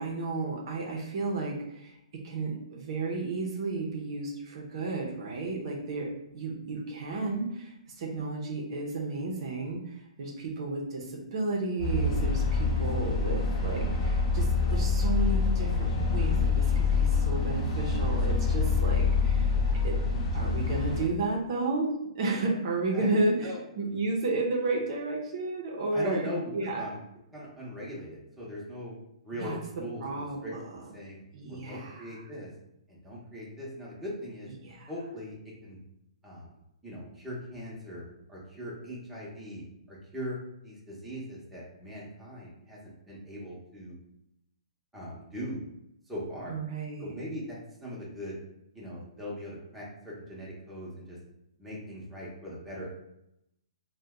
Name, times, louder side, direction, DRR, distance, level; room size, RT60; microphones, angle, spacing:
voice 1, 0.0-2.0 2.2-6.1 6.3-19.5 19.8-19.9 20.3-21.9 22.1-26.9 29.4-29.6 30.0-30.6 31.3-32.2 34.6-34.9 46.5-47.1, right 2 dB, 55° right, -1 dB, 0.6 m, -32 dB
sound 1, 11.8-21.1, left 4 dB, 40° left, 0.7 m, -26 dB
voice 2, 22.9-23.6 25.9-27.0 27.3-28.9 29.2-31.2 31.5-32.5 32.9-34.5 34.9-35.8 36.2-36.6 36.8-44.0 44.9-45.6 46.1-46.6 47.0-48.4 48.7-51.2 51.6-52.9, equal, 5° right, -7 dB, 0.8 m, -40 dB
2.7 x 2.1 x 3.5 m, 0.82 s
hypercardioid pair, 140°, 3 cm